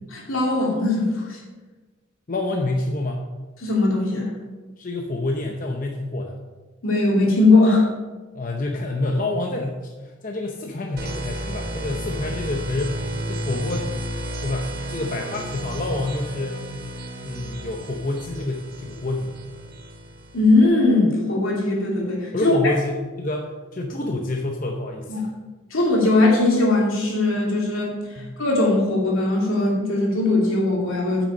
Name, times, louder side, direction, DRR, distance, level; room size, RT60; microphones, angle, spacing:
voice 1, 0.1-1.4 3.6-4.3 6.8-7.8 20.3-22.5 25.1-25.2 25.7-31.2, left 2 dB, 80° left, -2 dB, 2.7 m, -20 dB
voice 2, 2.3-3.3 4.8-6.4 8.3-13.9 14.4-16.7 17.2-19.4 22.3-25.3 28.2-28.4, left 2 dB, 40° left, 2 dB, 0.7 m, -28 dB
sound 1, 11.0-20.7, equal, 45° right, 1.0 m, -32 dB
9.3 x 6.2 x 5.5 m, 1.3 s
head